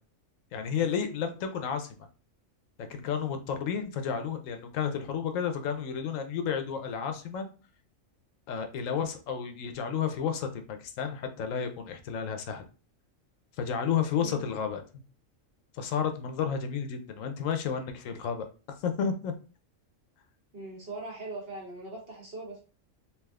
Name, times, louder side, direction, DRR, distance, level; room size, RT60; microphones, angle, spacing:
voice 1, 0.5-2.1 2.9-7.5 8.5-12.7 13.6-14.8 15.7-19.3, left 7 dB, 80° left, 7 dB, 1.0 m, -32 dB
voice 2, 20.5-22.6, right 2 dB, 50° right, -2 dB, 1.2 m, -40 dB
3.4 x 2.7 x 2.3 m, 0.35 s
omnidirectional pair, 1.3 m